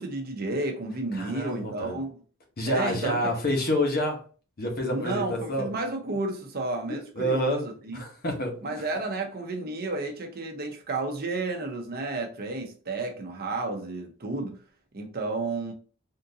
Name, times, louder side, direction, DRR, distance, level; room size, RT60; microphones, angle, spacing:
voice 1, 0.0-2.2 2.7-3.4 4.9-8.0 8.6-14.6 14.9-15.7, right 2 dB, 45° right, 0.7 m, -32 dB
voice 2, 1.1-2.0 2.6-4.2 4.6-5.7 6.9-7.6 7.9-8.8, equal, 45° left, 0.9 m, -28 dB
3.6 x 2.5 x 2.7 m
head